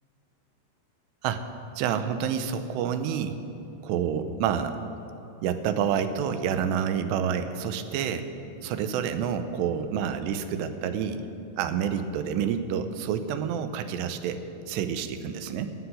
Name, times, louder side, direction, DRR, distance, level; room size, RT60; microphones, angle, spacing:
voice 1, 1.8-3.4 3.8-4.8 5.4-8.3 8.6-11.3 11.6-15.7, right 8 dB, 90° right, 9 dB, 2.9 m, -28 dB
12.5 x 8.0 x 9.8 m, 2.7 s
omnidirectional pair, 4.8 m